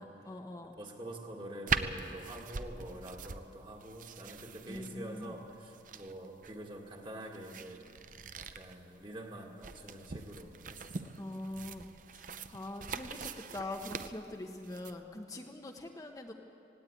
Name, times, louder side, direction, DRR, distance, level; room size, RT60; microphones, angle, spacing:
voice 1, 0.0-0.8 4.7-5.4 11.2-16.3, left 1 dB, 20° left, 2 dB, 0.9 m, -43 dB
voice 2, 0.8-7.8 8.4-11.2, right 1 dB, 25° right, 2 dB, 1.9 m, -46 dB
sound 1, 1.7-14.9, right 5 dB, 45° right, 0.7 m, -42 dB
18.5 x 18.0 x 9.0 m, 2.7 s
head